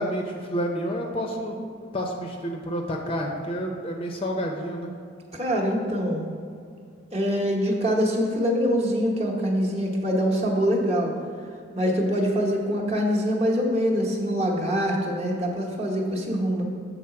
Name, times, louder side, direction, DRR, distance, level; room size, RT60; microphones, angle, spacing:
voice 1, 0.0-1.6 1.9-4.9, equal, 25° left, 1 dB, 0.5 m, -29 dB
voice 2, 5.3-6.3 7.1-11.1 11.8-16.6, equal, 30° right, -2 dB, 0.9 m, -24 dB
7.5 x 3.9 x 5.7 m, 2.3 s
head